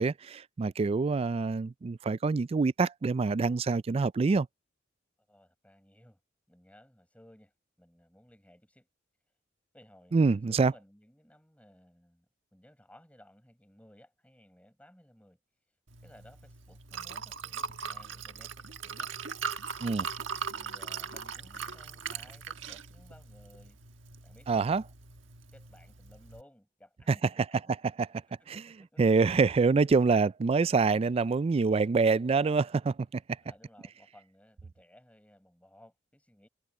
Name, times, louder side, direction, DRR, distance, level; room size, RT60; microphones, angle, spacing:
voice 1, 0.0-4.5 10.1-10.7 19.8-20.1 24.5-24.8 28.0-28.1 28.5-28.6 29.0-33.2, right 4 dB, 30° right, 0.3 m, -26 dB
voice 2, 5.3-6.2 6.5-7.5 7.8-8.9 9.7-12.3 12.5-15.4 15.7-15.8 16.0-19.1 20.1-23.8 24.2-24.7 25.5-27.7 28.3-29.0 33.4-36.5, left 1 dB, 5° left, 6.4 m, -59 dB
Liquid, 15.9-26.4, right 6 dB, 80° right, 1.4 m, -40 dB
head